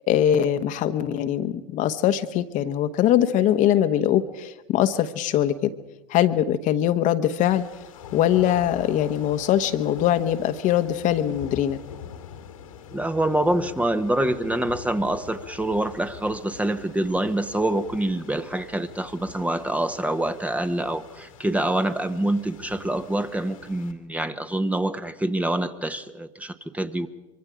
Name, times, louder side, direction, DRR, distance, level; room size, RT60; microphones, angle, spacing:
voice 1, 0.1-5.7 6.1-7.6 8.1-11.8, left 11 dB, 50° left, 9 dB, 1.2 m, -22 dB
sound 1, 7.4-23.9, left 8 dB, 80° left, 2.3 m, -43 dB
voice 2, 12.9-27.1, right 1 dB, 10° right, 10 dB, 1.1 m, -26 dB
25.0 x 23.5 x 5.0 m, 1.0 s
hypercardioid pair, 85°, 17 cm